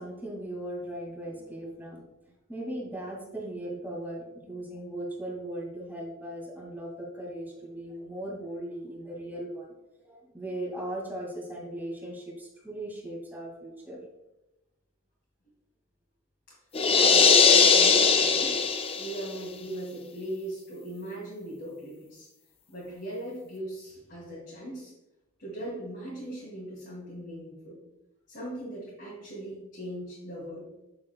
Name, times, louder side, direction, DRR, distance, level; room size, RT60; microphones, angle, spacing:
voice 1, 0.0-2.0 2.5-9.7 10.0-14.0, right 1 dB, 10° right, -2 dB, 2.1 m, -38 dB
sound 1, 16.7-19.3, left 5 dB, 30° left, 0.5 m, -20 dB
voice 2, 16.9-18.6 19.0-22.3 22.7-24.9 25.4-27.8 28.3-30.7, right 1 dB, 55° left, -7 dB, 2.7 m, -38 dB
8.8 x 7.1 x 2.3 m, 0.96 s
head